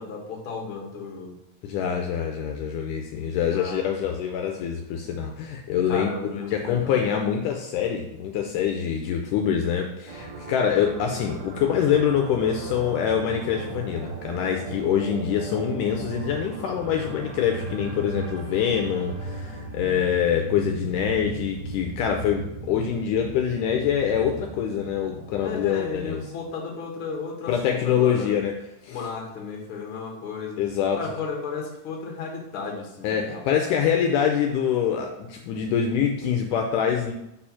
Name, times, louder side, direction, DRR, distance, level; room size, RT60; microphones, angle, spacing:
voice 1, 0.0-1.4 3.4-4.0 5.9-7.1 25.4-28.4 28.9-30.6 31.0-33.8, left 4 dB, 50° left, -1 dB, 1.7 m, -34 dB
voice 2, 1.6-26.2 27.5-28.5 28.8-29.0 30.6-31.0 33.0-37.1, left 8 dB, 80° left, 2 dB, 2.0 m, -25 dB
sound 1, 10.1-26.5, right 2 dB, 70° right, 1.3 m, -37 dB
5.0 x 4.4 x 5.7 m, 0.87 s
omnidirectional pair, 3.9 m